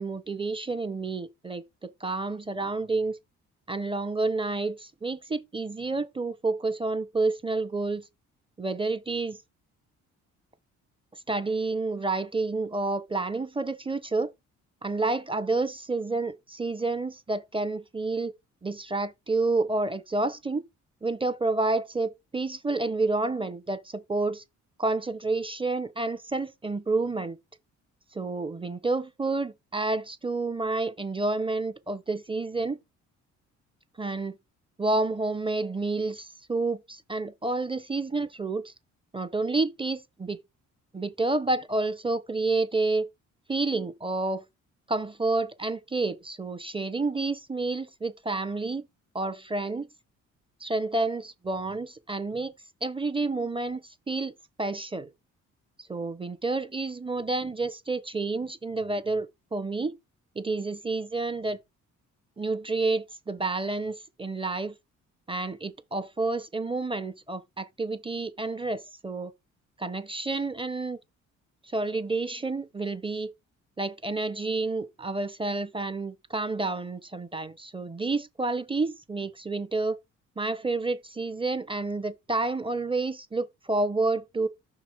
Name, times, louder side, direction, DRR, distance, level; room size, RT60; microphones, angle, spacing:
voice 1, 0.0-3.2 3.7-8.0 8.6-9.4 11.3-14.3 14.8-18.3 18.6-20.6 21.0-24.4 24.8-27.4 28.1-32.8 34.0-34.4 34.8-38.7 39.1-40.4 40.9-43.1 43.5-44.4 44.9-48.8 49.1-49.9 50.6-52.5 52.8-54.3 54.6-55.1 55.9-60.0 60.4-61.6 62.4-64.7 65.3-69.3 69.8-71.0 71.7-73.3 73.8-80.0 80.4-84.5, right 3 dB, 15° right, 0.8 m, -29 dB
5.9 x 4.7 x 4.6 m
cardioid pair, 90°, 30 cm